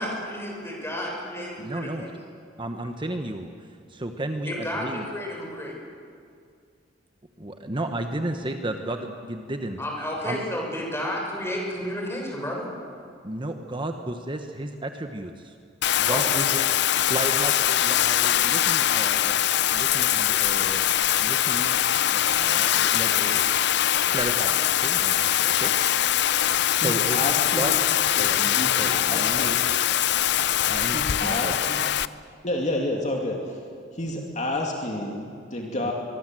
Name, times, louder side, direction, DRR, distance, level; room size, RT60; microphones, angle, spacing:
voice 1, 0.0-2.1 4.4-5.7 9.8-12.7 16.1-16.2, equal, 15° left, -1 dB, 6.6 m, -31 dB
voice 2, 1.6-2.0 2.6-5.0 7.4-9.8 10.2-10.4 13.2-15.6 16.0-16.5 16.9-20.8 21.2-21.8 22.1-23.4 24.1-25.7 26.6-27.7 28.2-30.0 30.7-31.7 35.8-35.9, right 1 dB, 25° right, 5 dB, 1.1 m, -33 dB
Bathtub (filling or washing), 15.8-32.1, left 11 dB, 65° left, 0.6 m, -22 dB
voice 3, 26.8-27.7 28.2-29.5 30.9-31.9 32.4-33.4 34.0-35.9, left 1 dB, 40° left, 0 dB, 2.6 m, -30 dB
23.5 x 23.0 x 7.7 m, 2.3 s
head